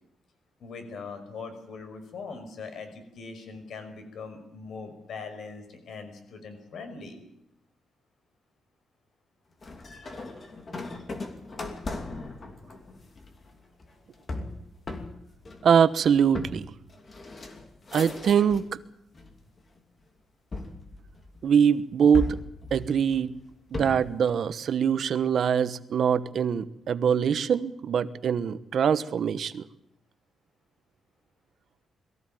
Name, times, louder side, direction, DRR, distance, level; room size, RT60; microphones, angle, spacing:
voice 1, 0.6-7.2, left 4 dB, 60° left, 7 dB, 5.5 m, -41 dB
sound 1, 9.6-18.8 19.1-19.8 20.5-21.6 22.1-24.2, left 2 dB, 30° left, 2.8 m, -38 dB
voice 2, 15.6-16.7 17.9-18.7 21.4-22.4 22.7-23.3 23.7-29.6, right 7 dB, 55° right, 13 dB, 1.1 m, -23 dB
22.5 x 15.5 x 9.2 m, 0.81 s
cardioid pair, 145°, 0 cm